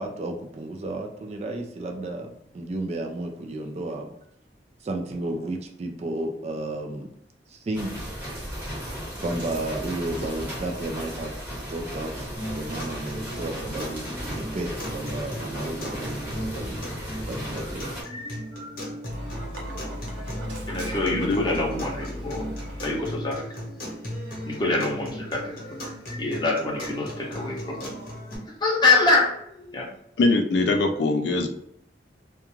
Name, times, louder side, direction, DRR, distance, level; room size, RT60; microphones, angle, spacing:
voice 1, 0.0-4.1 4.8-7.1 7.5-8.1 9.2-16.8 17.2-17.9, right 2 dB, 35° right, 3 dB, 0.3 m, -33 dB
sound 1, 7.7-18.0, equal, 10° right, 0.8 m, -35 dB
sound 2, 12.4-28.4, equal, 50° left, 0.9 m, -37 dB
Dog, 19.1-23.3, equal, 80° right, 0.7 m, -36 dB
voice 2, 20.7-22.4 22.8-23.5 24.5-25.9 26.2-27.9 28.5-29.9, left 3 dB, 25° left, -2 dB, 0.7 m, -25 dB
voice 3, 30.2-31.5, left 2 dB, 70° left, 5 dB, 0.4 m, -22 dB
2.4 x 2.2 x 3.0 m, 0.72 s
head